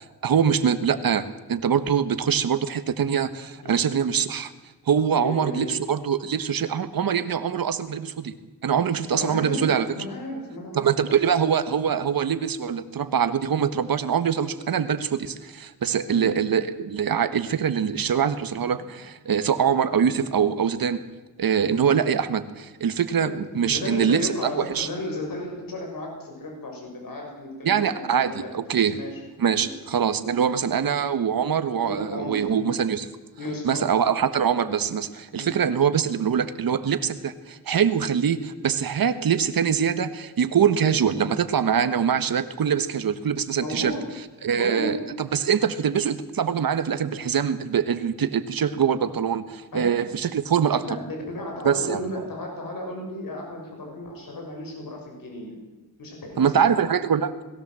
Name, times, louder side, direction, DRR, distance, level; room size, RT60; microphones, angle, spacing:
voice 1, 0.2-4.5 4.9-8.3 8.6-9.9 10.7-21.0 21.4-24.5 24.7-24.9 27.6-29.0 29.4-33.1 33.6-43.9 44.4-50.8 51.6-52.0 56.4-57.3, right 7 dB, 70° right, 11 dB, 1.5 m, -23 dB
voice 2, 5.1-5.7 9.1-11.0 16.1-16.3 23.2-29.2 29.6-29.7 30.7-30.9 31.8-32.7 33.4-33.9 35.3-35.5 43.6-44.1 44.6-45.0 49.7-49.8 50.8-55.6 56.0-56.7, left 1 dB, 65° left, 1 dB, 6.3 m, -34 dB
20.5 x 17.0 x 7.7 m, 1.2 s
wide cardioid pair, 100°, 37 cm